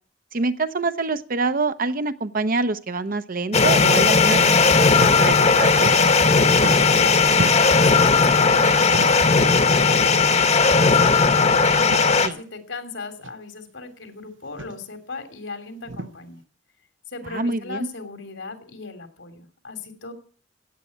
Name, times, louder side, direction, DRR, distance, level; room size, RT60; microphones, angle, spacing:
voice 1, 0.3-5.9 12.2-12.4 17.3-17.9, right 3 dB, 50° right, 10 dB, 0.8 m, -26 dB
sound 1, 3.5-12.3, left 4 dB, 35° left, 1.1 m, -17 dB
sound 2, 4.9-5.1 5.4-6.3 6.5-7.8 8.8-9.4 10.3-10.5 10.8-10.9 11.8-12.1 13.2-13.3 14.5-14.8 15.8-16.1, right 3 dB, 80° right, 0.8 m, -32 dB
voice 2, 6.9-11.3 11.8-16.4 17.1-20.1, left 4 dB, 80° left, 8 dB, 3.0 m, -37 dB
16.5 x 8.4 x 8.5 m, 0.44 s
head